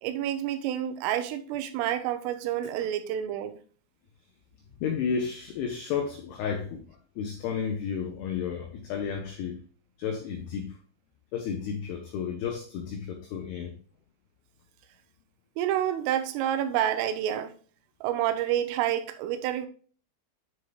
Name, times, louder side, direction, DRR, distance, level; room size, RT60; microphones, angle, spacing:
voice 1, 0.0-3.6 15.6-17.5 18.0-19.7, right 11 dB, 90° right, 3.2 m, -28 dB
voice 2, 4.8-9.6 10.0-10.8 11.3-13.7, left 6 dB, 85° left, 2.3 m, -32 dB
9.2 x 6.4 x 2.3 m
omnidirectional pair, 5.8 m